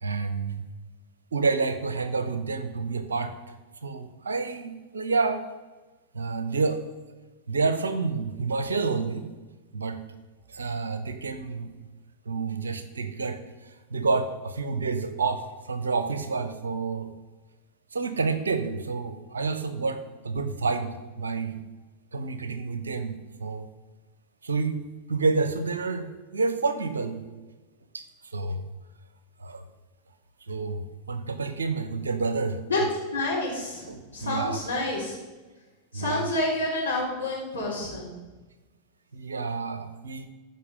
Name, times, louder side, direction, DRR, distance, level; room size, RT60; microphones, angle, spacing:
voice 1, 0.0-0.6 1.3-3.3 3.8-5.4 6.1-6.8 7.5-9.3 9.7-10.0 10.5-11.7 12.3-17.1 17.9-21.6 22.1-23.7 24.4-24.8 25.1-27.2 27.9-28.7 29.4-29.6 30.5-32.9 33.9-34.6 35.9-36.3 39.1-40.3, right 4 dB, 70° right, 11 dB, 0.9 m, -29 dB
voice 2, 33.1-33.9 34.1-35.1 35.9-38.1, left 2 dB, 80° left, -6 dB, 4.2 m, -28 dB
14.5 x 5.6 x 5.2 m, 1.2 s
figure-of-eight pair, 90°, 0 cm